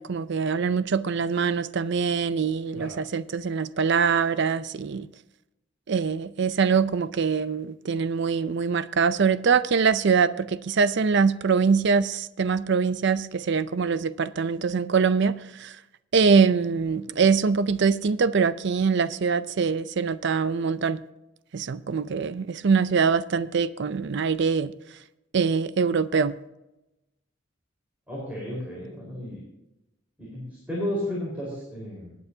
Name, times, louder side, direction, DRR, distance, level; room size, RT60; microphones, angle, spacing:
voice 1, 0.0-5.1 5.9-15.8 16.1-21.0 21.5-24.7 25.3-26.3, right 5 dB, 60° right, 0.5 m, -23 dB
voice 2, 28.1-29.4 30.2-32.2, left 1 dB, 10° right, 4.4 m, -33 dB
20.0 x 9.2 x 2.8 m
head